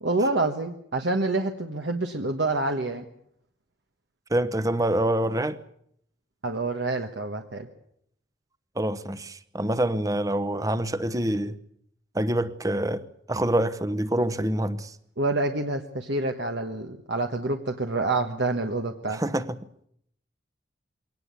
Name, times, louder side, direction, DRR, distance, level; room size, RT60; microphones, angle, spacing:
voice 1, 0.0-3.0 6.4-7.7 15.2-19.2, right 2 dB, 70° right, 1.3 m, -27 dB
voice 2, 4.3-5.6 8.8-11.6 12.1-14.9 19.1-19.6, right 1 dB, 20° right, 0.9 m, -26 dB
23.0 x 18.0 x 8.3 m
head